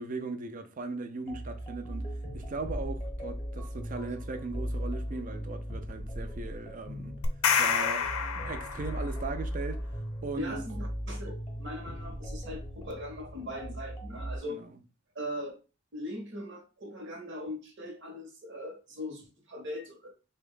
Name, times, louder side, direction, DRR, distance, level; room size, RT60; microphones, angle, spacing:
voice 1, 0.0-2.1 2.3-7.2 7.6-9.9 10.2-10.6 14.5-14.7, right 3 dB, 35° right, 0.4 m, -38 dB
sound 1, 1.3-14.4, equal, 25° left, 0.7 m, -38 dB
sound 2, 7.2-9.2, left 6 dB, 75° left, 0.5 m, -28 dB
voice 2, 10.3-14.6 15.1-15.6 15.9-20.2, left 1 dB, 55° right, 0.9 m, -40 dB
3.5 x 2.2 x 3.6 m
head